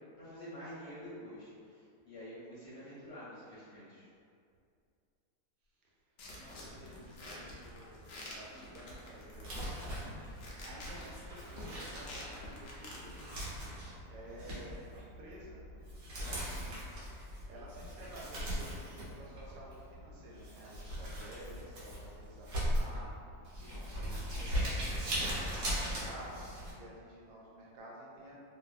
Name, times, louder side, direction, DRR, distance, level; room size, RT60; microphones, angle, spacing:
voice 1, 0.2-4.1, equal, 50° left, -11 dB, 0.9 m, -48 dB
voice 2, 5.7-8.1 8.3-13.3 13.7-15.6 16.2-16.8 17.5-28.3, right 1 dB, 85° right, -4 dB, 1.2 m, -52 dB
sound 1, 6.2-13.4, left 1 dB, 80° left, 0.5 m, -49 dB
Crumpling crinkling, 9.3-26.7, equal, 55° right, 1.0 m, -39 dB
2.6 x 2.5 x 2.3 m, 2.4 s
omnidirectional pair, 1.7 m